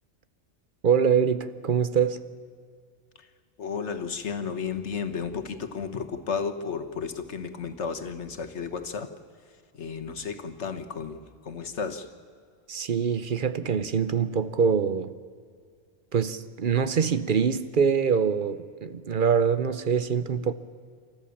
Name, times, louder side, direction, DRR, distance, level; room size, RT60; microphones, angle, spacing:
voice 1, 0.8-2.2 12.7-15.1 16.1-20.5, right 6 dB, 50° right, 0.9 m, -24 dB
voice 2, 3.6-9.1 9.7-12.1, left 6 dB, 90° left, 1.6 m, -33 dB
28.5 x 13.5 x 7.2 m
omnidirectional pair, 1.1 m